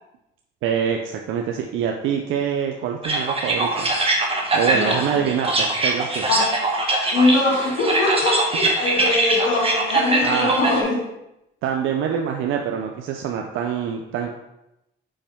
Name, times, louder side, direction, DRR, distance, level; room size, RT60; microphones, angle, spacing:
voice 1, 0.6-3.9 4.5-6.3 10.2-10.5 11.6-14.3, right 8 dB, 90° right, 3 dB, 0.5 m, -25 dB
sound 1, 3.0-10.8, right 2 dB, 30° right, 1.2 m, -22 dB
voice 2, 4.7-5.0 6.3-6.5 7.1-11.0, left 2 dB, 85° left, -4 dB, 2.4 m, -22 dB
5.5 x 5.2 x 3.5 m, 0.88 s
cardioid pair, 90°, 20 cm